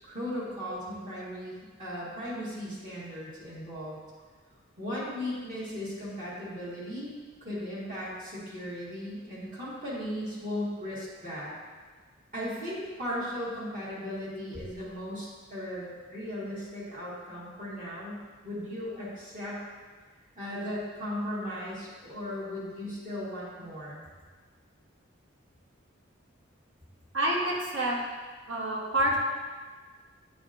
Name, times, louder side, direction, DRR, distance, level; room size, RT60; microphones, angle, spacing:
voice 1, 0.0-4.0 4.8-7.1 7.4-11.5 12.3-19.6 20.4-24.0, left 1 dB, 40° right, -8 dB, 1.6 m, -37 dB
voice 2, 27.1-28.0 28.5-29.2, right 1 dB, 65° right, -3 dB, 1.2 m, -27 dB
8.6 x 5.0 x 2.6 m, 1.5 s
head